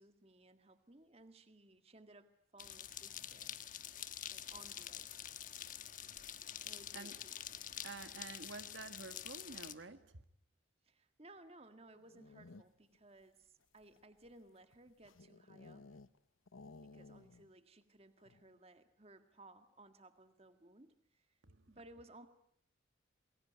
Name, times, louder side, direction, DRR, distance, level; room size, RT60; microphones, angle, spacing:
voice 1, 0.0-3.6 4.3-5.1 6.6-7.4 10.8-15.9 16.8-21.4 21.7-22.3, right 2 dB, 30° right, 8 dB, 1.8 m, -60 dB
sound 1, 2.6-9.7, left 10 dB, 40° left, 1.4 m, -47 dB
voice 2, 7.8-10.0 21.5-21.6, right 3 dB, 70° right, 9 dB, 1.7 m, -49 dB
sound 2, 11.9-13.0 13.6-16.2 16.5-17.5 17.8-17.9 18.2-18.6, left 3 dB, 90° left, 1.0 m, -57 dB
29.0 x 21.5 x 9.6 m, 0.71 s
head